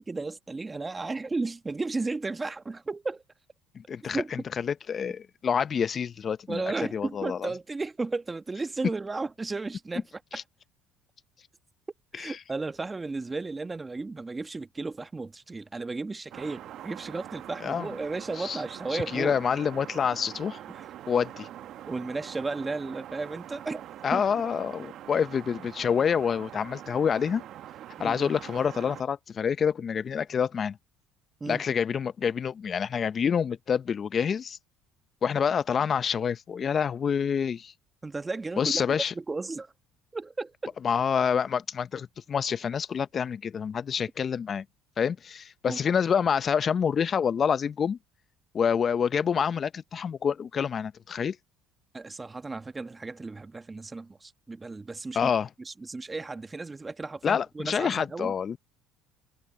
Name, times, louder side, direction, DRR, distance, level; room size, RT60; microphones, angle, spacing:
voice 1, 0.0-3.2 4.1-4.3 6.5-10.0 12.1-19.4 20.7-20.9 21.9-24.2 28.0-28.3 31.4-31.6 38.0-39.7 40.1-40.8 45.6-45.8 51.9-55.3 55.6-58.3, right 3 dB, 20° right, 1.4 m, -34 dB
voice 2, 3.7-6.6 6.9-7.5 10.3-10.4 12.2-12.4 17.6-17.9 18.4-18.6 18.9-20.6 21.1-21.5 24.0-27.4 28.0-30.8 31.5-34.6 35.2-37.7 38.6-39.1 40.8-44.6 45.0-48.0 48.5-51.4 55.1-55.5 57.2-58.6, left 7 dB, 40° left, 0.6 m, -27 dB
sound 1, 16.3-29.0, right 12 dB, 60° right, 1.2 m, -44 dB
supercardioid pair, 80°, 0 cm